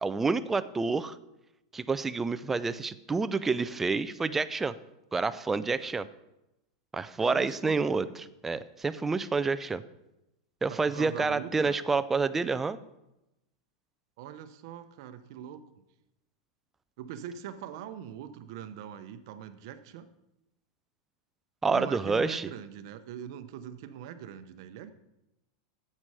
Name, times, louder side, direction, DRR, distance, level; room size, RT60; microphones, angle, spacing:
voice 1, 0.0-1.2 1.7-4.7 5.1-6.1 6.9-8.0 8.4-9.8 10.6-12.8 21.6-22.5, right 4 dB, 10° right, 13 dB, 0.3 m, -28 dB
voice 2, 7.2-8.2 10.7-11.8 14.2-15.8 17.0-20.1 21.7-24.9, right 9 dB, 60° right, 11 dB, 0.7 m, -42 dB
9.6 x 7.5 x 4.8 m, 0.91 s
supercardioid pair, 155°, 3 cm